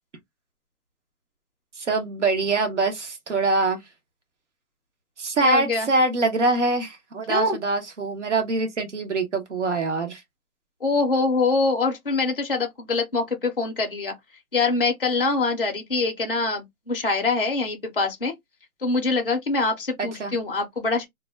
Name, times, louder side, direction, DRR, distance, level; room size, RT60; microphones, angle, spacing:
voice 1, 1.8-3.8 5.2-10.2 20.0-20.3, right 3 dB, 50° right, 0.8 m, -24 dB
voice 2, 5.4-5.9 7.3-7.6 10.8-14.2 14.5-18.3 18.8-21.1, left 3 dB, 40° left, 0.4 m, -24 dB
2.1 x 2.1 x 3.3 m
hypercardioid pair, 175°, 45 cm